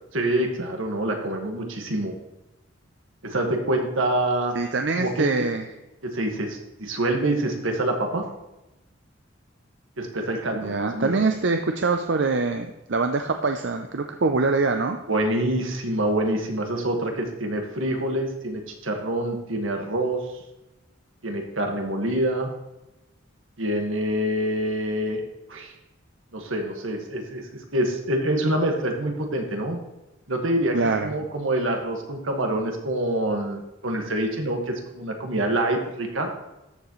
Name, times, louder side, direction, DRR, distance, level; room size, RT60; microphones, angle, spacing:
voice 1, 0.1-2.2 3.2-4.5 5.0-5.3 6.0-8.2 10.0-11.2 15.1-20.2 21.2-22.5 23.6-25.2 25.5-25.7 26.3-29.8 30.3-30.8 31.0-36.3, right 1 dB, 80° right, 3 dB, 1.7 m, -26 dB
voice 2, 4.5-5.6 10.5-15.0 30.7-31.1, right 3 dB, 60° right, 5 dB, 0.5 m, -24 dB
13.0 x 7.3 x 3.1 m, 0.97 s
head